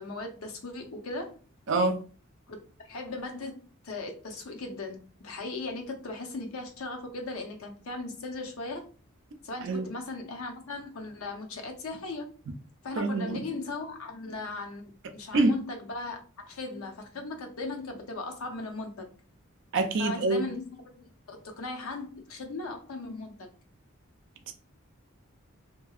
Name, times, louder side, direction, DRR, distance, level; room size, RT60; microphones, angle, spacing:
voice 1, 0.0-1.4 2.5-2.6 2.9-8.8 9.4-12.3 12.8-19.1 20.0-23.5, left 3 dB, 85° left, 0.7 m, -38 dB
voice 2, 1.7-2.0 9.6-9.8 13.0-13.4 15.3-15.5 19.7-20.4, right 2 dB, 60° right, 0.5 m, -25 dB
2.7 x 2.6 x 2.4 m
head